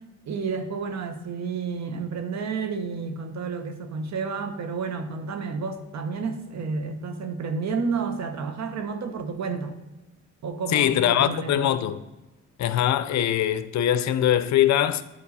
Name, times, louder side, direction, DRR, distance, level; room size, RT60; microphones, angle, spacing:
voice 1, 0.2-9.8 10.4-11.7, right 5 dB, 65° right, 1.0 m, -31 dB
voice 2, 10.7-12.0 12.6-15.0, left 11 dB, 65° left, 0.6 m, -22 dB
9.8 x 4.6 x 4.2 m
cardioid pair, 90°, 30 cm